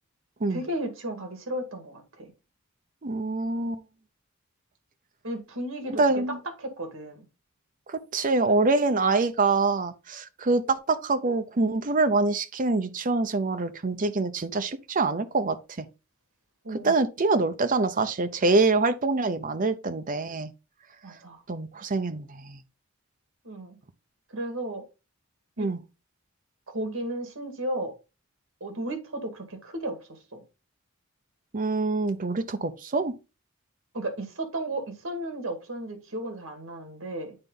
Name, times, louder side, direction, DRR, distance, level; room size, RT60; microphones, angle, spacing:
voice 1, 0.5-2.3 5.2-6.0 6.6-7.3 16.6-17.0 21.0-21.4 23.4-23.8 24.3-24.8 25.6-25.7 26.7-27.9 28.6-30.4 33.9-37.4, right 1 dB, 80° right, 2.0 m, -34 dB
voice 2, 3.0-3.8 6.0-6.4 7.9-15.9 16.8-20.5 21.5-22.6 25.6-25.8 31.5-33.1, right 3 dB, 40° right, 0.7 m, -25 dB
8.9 x 4.0 x 3.7 m
head